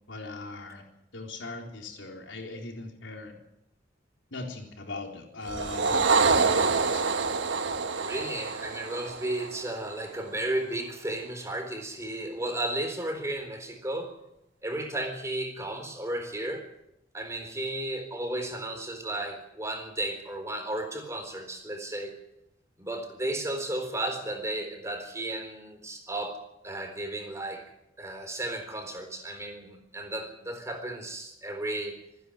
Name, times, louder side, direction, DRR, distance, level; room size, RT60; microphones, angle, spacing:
voice 1, 0.1-0.8 1.1-3.4 4.3-6.1 6.4-7.1 7.4-7.5, left 3 dB, 85° left, 2 dB, 3.9 m, -40 dB
sound 1, 5.5-10.1, right 4 dB, 70° right, 1.4 m, -26 dB
voice 2, 7.8-14.1 14.6-16.6 17.1-22.1 22.8-27.6 28.0-31.9, right 1 dB, 15° right, 5 dB, 4.0 m, -34 dB
26.0 x 10.5 x 9.9 m, 0.85 s
head